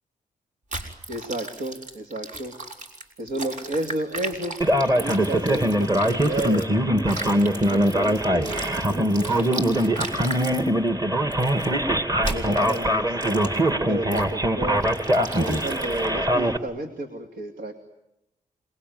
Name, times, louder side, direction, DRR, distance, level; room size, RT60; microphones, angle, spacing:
sound 1, 0.7-6.7 7.0-10.7 11.3-11.7 12.2-12.8 13.2-13.7 14.1-14.3 14.8-16.1, right 2 dB, 65° right, 5.9 m, -36 dB
voice 1, 1.1-2.5 3.2-4.6 4.9-6.8 7.5-9.5 12.3-13.5 13.9-14.8 15.3-17.7, right 1 dB, 85° right, 7 dB, 2.8 m, -32 dB
Male speech man speaking, 4.6-16.6, right 1 dB, 25° right, 2.5 m, -22 dB
28.5 x 21.5 x 9.6 m, 0.88 s
cardioid pair, 90°, 14 cm